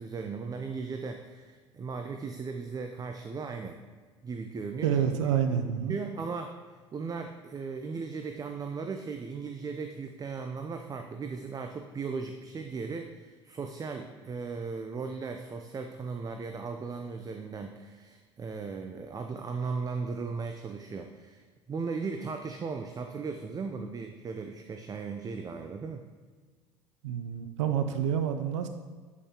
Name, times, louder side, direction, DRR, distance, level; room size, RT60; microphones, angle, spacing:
voice 1, 0.0-3.8 4.2-4.9 5.5-5.6 5.9-6.5 6.9-26.0, right 4 dB, 25° right, 6 dB, 0.5 m, -37 dB
voice 2, 4.8-6.0 27.0-28.7, right 8 dB, 80° right, 8 dB, 0.5 m, -28 dB
8.3 x 5.5 x 2.9 m, 1.5 s
hypercardioid pair, 75°, 15 cm